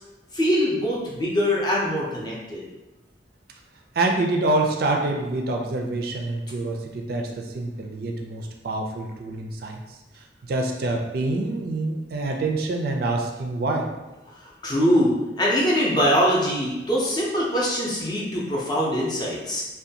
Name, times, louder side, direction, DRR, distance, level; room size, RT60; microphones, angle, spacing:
voice 1, 0.3-2.6 14.3-19.6, equal, 25° left, -4 dB, 0.5 m, -23 dB
voice 2, 4.0-10.0 10.5-13.9, right 2 dB, 55° right, 1 dB, 0.3 m, -26 dB
2.5 x 2.2 x 2.7 m, 1.1 s
head